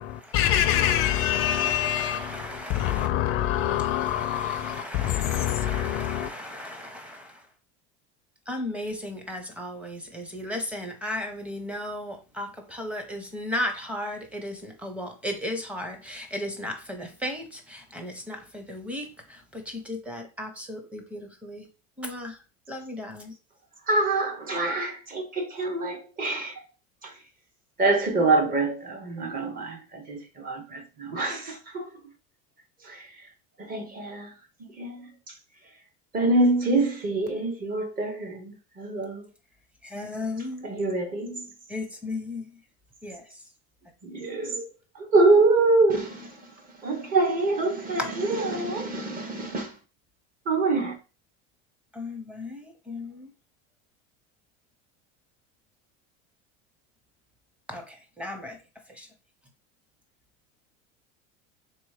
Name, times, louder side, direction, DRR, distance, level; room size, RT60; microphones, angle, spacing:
voice 1, 0.0-6.3, left 12 dB, 45° left, 0.5 m, -26 dB
voice 2, 0.7-3.1 3.6-7.4 8.5-21.7 22.0-22.4 22.7-23.3 39.8-40.7 41.7-42.5 43.0-43.2 51.9-53.3 57.7-58.6 58.9-59.1, left 1 dB, 5° right, 0.8 m, -36 dB
voice 3, 23.9-26.5 27.0-27.1 27.8-31.9 32.8-33.0 33.6-34.3 34.6-35.1 36.1-39.2 40.6-41.5 44.0-44.7 45.0-46.3 46.8-49.7 50.5-50.9, right 2 dB, 30° right, 1.0 m, -25 dB
3.5 x 3.0 x 4.8 m
cardioid pair, 150°, 30 cm